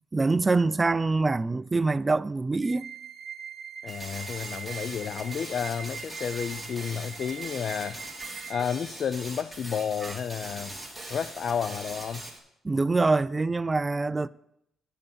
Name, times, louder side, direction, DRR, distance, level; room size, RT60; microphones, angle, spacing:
voice 1, 0.1-2.9 10.0-10.2 12.6-14.3, right 3 dB, 20° right, 0.3 m, -25 dB
sound 1, 2.6-8.6, right 7 dB, 50° right, 0.8 m, -42 dB
voice 2, 3.8-8.0 8.5-10.7 11.1-12.2, left 7 dB, 55° left, 0.4 m, -31 dB
sound 2, 3.9-12.4, right 1 dB, 5° right, 2.1 m, -41 dB
10.5 x 5.6 x 7.0 m
cardioid pair, 90°, 0 cm